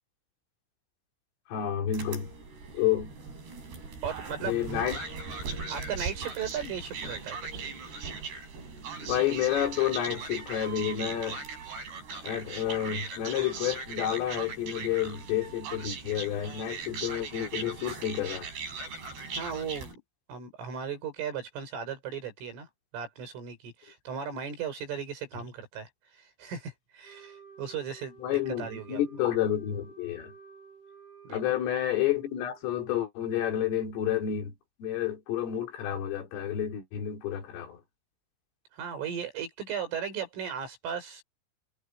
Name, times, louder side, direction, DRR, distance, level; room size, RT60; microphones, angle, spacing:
voice 1, 1.5-2.3 2.7-3.1 4.4-5.0 9.1-11.4 12.2-18.5 28.2-30.3 31.3-34.5 34.8-37.8, left 10 dB, 90° left, 6.4 m, -30 dB
sound 1, 1.9-20.0, right 4 dB, 55° right, 7.9 m, -39 dB
voice 2, 4.0-4.7 5.7-7.7 19.4-20.0 20.3-29.0 31.3-31.4 38.7-41.2, right 7 dB, 80° right, 9.1 m, -37 dB
Wind instrument woodwind instrument, 27.0-32.7, right 6 dB, 55° left, 6.1 m, -52 dB
omnidirectional pair, 5.7 m